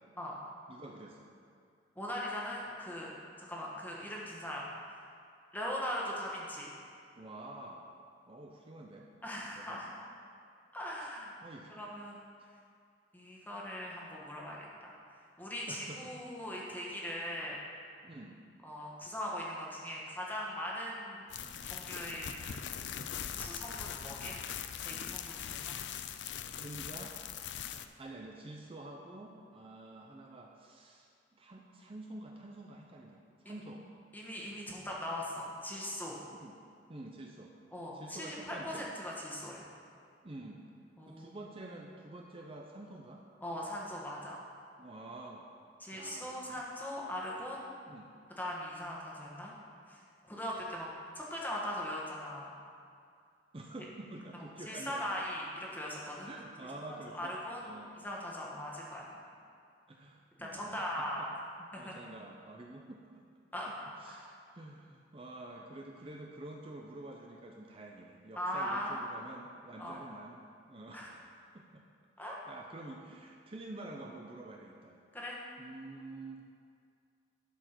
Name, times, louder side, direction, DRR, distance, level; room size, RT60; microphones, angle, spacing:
voice 1, 0.7-1.3 7.2-7.9 8.3-9.1 9.5-9.8 11.0-11.1 11.4-12.0 12.4-12.6 15.7-16.1 18.0-18.4 25.6-25.7 26.6-27.1 28.0-33.8 36.3-36.5 36.9-37.5 37.9-38.9 40.2-40.6 41.0-43.2 44.8-45.5 45.9-46.6 47.9-48.1 53.5-55.2 56.2-57.4 57.6-57.9 59.9-61.3 61.8-63.0 63.6-71.2 71.5-71.8 72.2-75.0 75.6-76.4, right 2 dB, 30° right, 0 dB, 0.6 m, -48 dB
voice 2, 1.9-3.1 3.5-5.0 5.5-6.7 9.2-10.0 10.7-11.3 11.7-12.2 13.1-14.9 15.4-17.6 18.6-21.3 21.6-22.6 23.4-24.4 24.8-25.8 33.4-33.6 34.1-36.2 37.7-39.6 41.0-41.2 43.4-44.4 45.8-47.7 48.4-49.5 49.9-50.9 51.1-52.5 54.6-56.3 57.1-57.7 58.0-59.1 60.4-61.3 61.7-62.0 63.5-63.7 64.0-64.3 68.4-69.0 69.8-70.0 70.9-71.1 72.2-72.4 75.1-75.4, equal, 10° left, -4 dB, 1.5 m, -40 dB
sound 1, 21.3-27.9, left 9 dB, 80° left, 0.4 m, -41 dB
11.5 x 5.0 x 6.0 m, 2.3 s
head